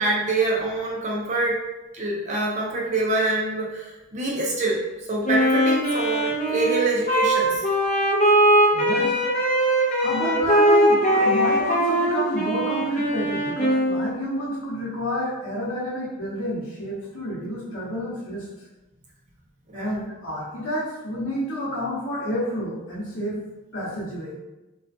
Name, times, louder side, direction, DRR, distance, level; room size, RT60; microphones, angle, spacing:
voice 1, 0.0-1.6 1.9-7.6 19.7-19.9, right 2 dB, 35° right, -2 dB, 0.4 m, -25 dB
Wind instrument woodwind instrument, 5.3-14.2, right 1 dB, 35° left, 0.5 m, -21 dB
voice 2, 8.7-9.1 10.0-18.5 19.7-23.4 23.7-24.3, equal, 85° left, -5 dB, 0.9 m, -29 dB
2.4 x 2.2 x 2.5 m, 1.0 s
head